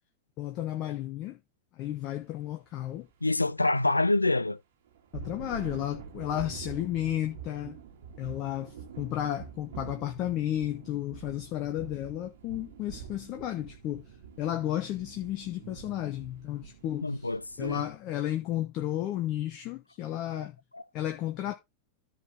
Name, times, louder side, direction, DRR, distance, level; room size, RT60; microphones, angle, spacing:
voice 1, 0.4-1.4 1.7-3.1 5.1-7.8 8.2-14.1 14.4-17.1 17.6-20.5 20.9-21.6, left 12 dB, 40° left, 1.1 m, -33 dB
sound 1, 1.9-2.1 2.5-2.8 4.9-17.9, right 7 dB, 60° right, 2.3 m, -46 dB
voice 2, 3.2-4.6 17.0-17.9 20.3-20.5 20.7-20.8, left 2 dB, 85° left, 0.4 m, -27 dB
14.0 x 4.7 x 3.6 m
figure-of-eight pair, 90°, 0 cm